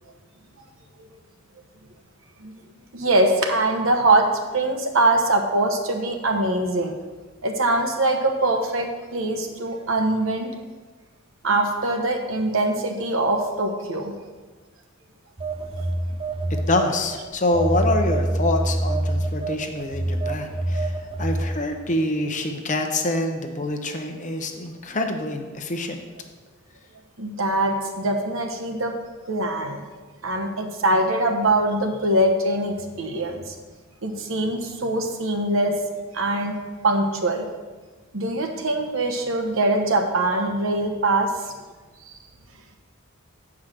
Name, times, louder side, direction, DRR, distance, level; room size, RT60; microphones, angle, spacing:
voice 1, 2.9-4.3 4.5-7.0 7.4-10.5 11.4-14.1 27.2-28.9 29.3-29.8 30.2-33.6 34.0-35.8 36.1-36.6 36.8-37.5 38.1-41.5 42.0-42.1, right 2 dB, 70° right, 4 dB, 1.0 m, -23 dB
Telephone, 15.4-17.2 17.5-21.6, right 1 dB, 25° right, 0.6 m, -25 dB
voice 2, 16.7-20.9 21.2-26.0, left 2 dB, 35° left, 5 dB, 0.8 m, -26 dB
7.3 x 4.8 x 6.4 m, 1.3 s
head